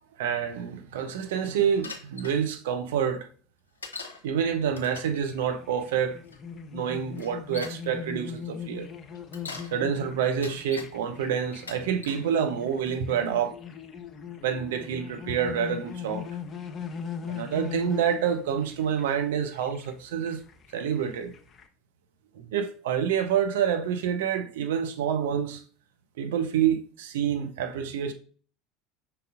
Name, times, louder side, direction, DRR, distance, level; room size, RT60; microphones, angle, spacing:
voice 1, 0.2-3.3 4.2-6.2 6.7-8.9 9.7-13.6 14.4-16.3 17.3-20.4 20.7-21.3 22.4-25.6 26.2-28.1, right 8 dB, 65° right, 0.5 m, -27 dB
Bicycle, 1.8-2.4 3.8-4.2 4.7-5.2 6.3-6.4 7.2-7.8 9.1-9.7 10.2-10.9 11.5-12.3 12.9-13.3, left 4 dB, 80° left, 0.7 m, -41 dB
sound 1, 5.0-21.7, left 6 dB, 30° left, 0.7 m, -40 dB
5.3 x 3.9 x 2.5 m
figure-of-eight pair, 70°, 0 cm